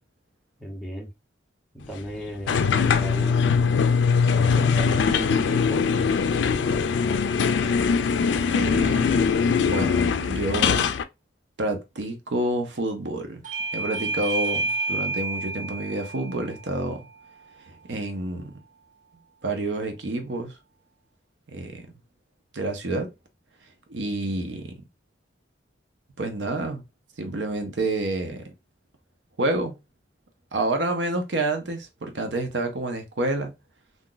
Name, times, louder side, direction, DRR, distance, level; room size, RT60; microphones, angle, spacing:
voice 1, 0.6-1.1 1.7-3.4 4.3-6.1, equal, ahead, 0.8 m, -36 dB
sound 1, 2.5-11.0, left 5 dB, 75° left, 0.3 m, -21 dB
voice 2, 8.5-9.4 9.6-10.9 11.6-13.4 13.7-17.1 17.7-18.5 19.4-20.6 21.5-21.9 22.5-23.1 23.9-24.8 26.2-26.8 27.2-28.5 29.4-29.8 30.5-33.5, right 2 dB, 75° right, 0.7 m, -28 dB
Bell / Doorbell, 13.4-18.6, right 3 dB, 45° right, 0.8 m, -31 dB
2.5 x 2.3 x 3.8 m
head